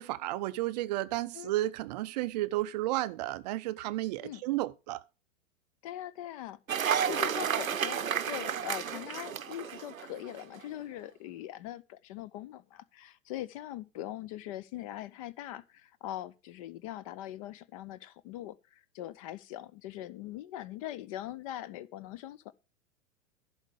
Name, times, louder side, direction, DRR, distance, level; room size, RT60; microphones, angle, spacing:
voice 1, 0.0-5.0, right 16 dB, 35° right, 0.4 m, -32 dB
voice 2, 5.8-22.5, left 13 dB, 30° left, 0.4 m, -42 dB
Cheering / Applause, 6.7-10.4, right 8 dB, 90° right, 0.7 m, -32 dB
11.0 x 4.7 x 6.5 m
figure-of-eight pair, 105°, 40 cm